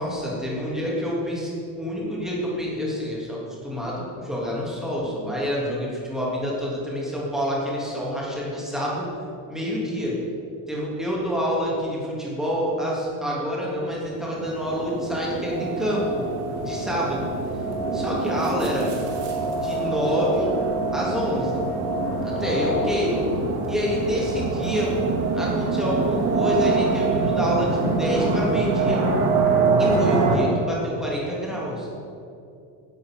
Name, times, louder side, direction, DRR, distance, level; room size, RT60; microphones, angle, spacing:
voice 1, 0.0-9.1 9.5-10.1 10.7-16.2 16.6-17.3 17.9-18.9 19.3-20.5 20.9-21.6 22.2-23.1 23.7-24.9 25.3-29.0 29.8-31.9, equal, ahead, -5 dB, 2.9 m, -27 dB
sound 1, 14.2-30.4, right 3 dB, 70° right, 2.4 m, -25 dB
10.5 x 7.6 x 7.7 m, 2.5 s
cardioid pair, 155°, 38 cm